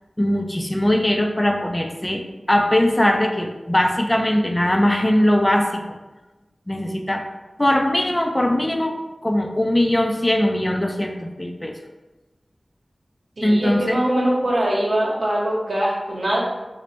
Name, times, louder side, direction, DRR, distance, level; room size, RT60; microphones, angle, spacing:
voice 1, 0.2-2.2 2.5-5.7 6.7-7.2 7.6-11.7 13.4-14.0, left 1 dB, 25° left, 3 dB, 0.4 m, -20 dB
voice 2, 13.4-16.4, right 1 dB, 70° right, -4 dB, 0.9 m, -22 dB
3.2 x 2.1 x 3.9 m, 1.1 s
cardioid pair, 40°, 0 cm